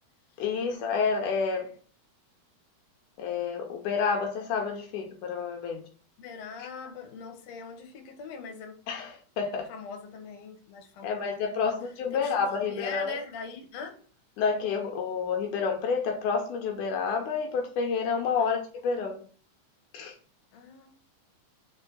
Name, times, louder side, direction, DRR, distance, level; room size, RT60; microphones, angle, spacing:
voice 1, 0.4-1.8 3.2-5.8 6.6-6.7 8.9-9.7 11.0-13.2 14.4-19.2 19.9-20.2, left 5 dB, 80° left, 2.3 m, -29 dB
voice 2, 6.2-8.7 9.7-11.1 11.6-11.8 12.1-12.3 12.6-14.0 18.4-18.6 20.5-20.9, left 5 dB, 60° left, 2.1 m, -41 dB
4.9 x 4.5 x 5.3 m
omnidirectional pair, 3.7 m